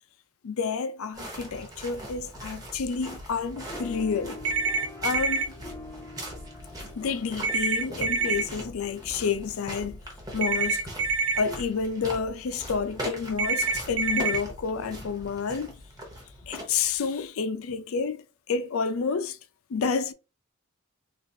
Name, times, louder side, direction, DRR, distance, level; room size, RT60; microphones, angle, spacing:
voice 1, 0.4-4.4 5.0-5.5 7.0-10.0 10.3-10.8 11.4-15.7 16.4-19.4 19.7-20.1, left 5 dB, 70° left, 0.4 m, -29 dB
sound 1, 1.1-17.2, equal, 15° right, 0.8 m, -41 dB
sound 2, 3.7-10.6, left 2 dB, 10° left, 0.4 m, -46 dB
sound 3, 4.4-5.4 7.4-8.4 10.4-11.4 13.4-14.4, right 4 dB, 70° right, 0.5 m, -26 dB
3.9 x 2.4 x 2.6 m
head